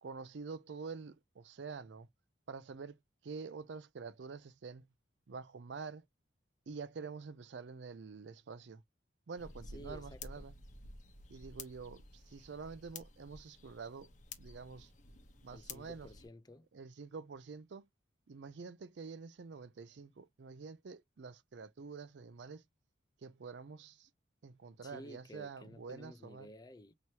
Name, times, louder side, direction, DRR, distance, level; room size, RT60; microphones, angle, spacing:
voice 1, 0.0-2.1 2.5-4.8 5.3-6.0 6.7-8.8 9.3-10.5 11.3-14.1 14.4-14.9 15.4-16.1 16.7-17.9 18.3-22.6 23.2-24.1 24.4-26.5, right 5 dB, 65° right, 0.4 m, -47 dB
sound 1, 9.4-16.3, left 3 dB, 40° left, 1.0 m, -52 dB
voice 2, 9.7-10.2 15.5-16.7 24.8-26.9, equal, 20° left, 0.4 m, -53 dB
4.7 x 2.9 x 2.8 m
head